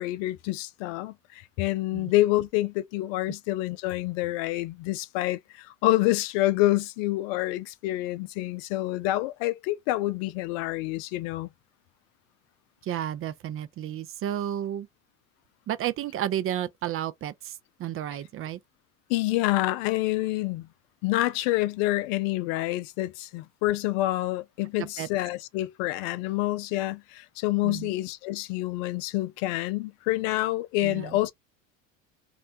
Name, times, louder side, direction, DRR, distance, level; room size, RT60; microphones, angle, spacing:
voice 1, 0.0-11.5 19.1-20.7 21.0-31.3, left 17 dB, 75° left, 0.5 m, -27 dB
voice 2, 12.8-14.9 15.7-18.6 24.8-25.1 27.6-27.9 30.8-31.2, right 11 dB, 35° right, 0.4 m, -32 dB
2.5 x 2.1 x 2.7 m
supercardioid pair, 85°, 40 cm